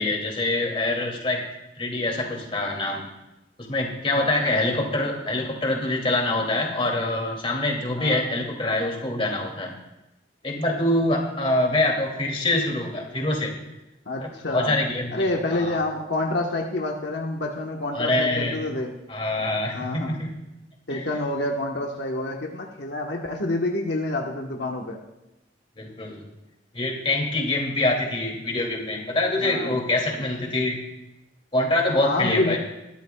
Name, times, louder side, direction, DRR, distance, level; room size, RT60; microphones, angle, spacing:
voice 1, 0.0-1.4 1.8-3.1 3.6-9.8 10.4-13.5 14.2-15.1 15.5-15.8 17.9-18.6 19.1-20.3 20.9-21.0 25.8-26.2 26.7-30.8 31.5-32.6, left 2 dB, 30° left, 1 dB, 2.5 m, -25 dB
voice 2, 4.1-4.9 8.0-8.2 14.1-14.7 15.1-18.9 19.7-20.1 20.9-25.0 29.4-29.8 31.9-32.6, left 2 dB, 75° left, 0 dB, 1.2 m, -28 dB
21.0 x 13.0 x 2.3 m, 0.96 s
head